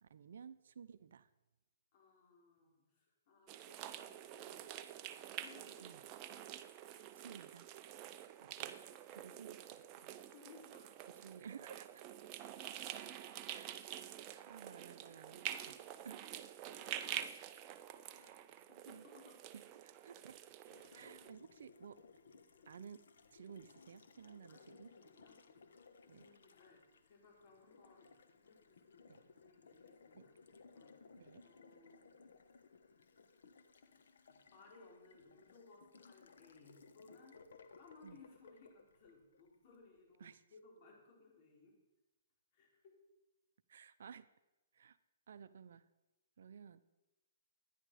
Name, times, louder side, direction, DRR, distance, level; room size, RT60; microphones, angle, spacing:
voice 1, 0.0-1.3 5.8-6.0 7.2-7.7 8.4-8.8 9.1-10.1 11.2-12.0 13.5-13.7 14.2-15.8 16.0-16.5 18.1-19.0 19.5-20.4 20.9-22.0 22.7-23.1 23.3-24.9 26.1-26.3 29.1-29.2 30.1-30.3 31.2-31.4 38.0-38.2 40.2-40.4 43.7-44.3 44.7-45.0 45.3-45.9 46.4-46.8, right 7 dB, 70° right, 13 dB, 0.6 m, -55 dB
voice 2, 1.9-5.0 5.3-6.0 6.5-7.0 8.0-8.1 10.3-10.9 12.5-12.7 15.0-15.7 16.6-17.0 17.9-19.4 19.6-19.7 20.9-21.4 22.5-22.9 24.5-25.4 26.0-28.1 28.4-30.3 30.7-32.1 33.9-34.0 34.3-37.4 37.8-41.8 42.5-43.0, left 4 dB, 40° left, -2 dB, 4.8 m, -63 dB
sound 1, 3.5-21.3, right 11 dB, 25° right, 0.6 m, -48 dB
Water tap faucet, 20.7-39.8, left 4 dB, 75° left, 1.1 m, -63 dB
12.0 x 10.0 x 4.9 m, 1.0 s
hypercardioid pair, 150°, 0 cm